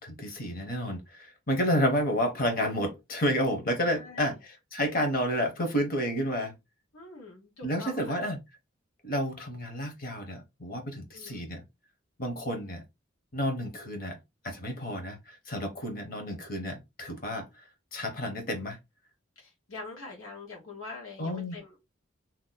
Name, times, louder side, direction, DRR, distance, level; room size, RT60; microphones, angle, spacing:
voice 1, 0.0-6.5 7.6-8.4 9.0-11.6 12.2-12.8 13.3-14.2 14.4-17.5 17.9-18.8 21.2-21.6, equal, 45° left, 1.0 m, -30 dB
voice 2, 3.9-4.4 6.9-8.2 11.1-11.5 19.4-21.8, left 3 dB, 80° left, 1.3 m, -44 dB
2.9 x 2.2 x 3.9 m
head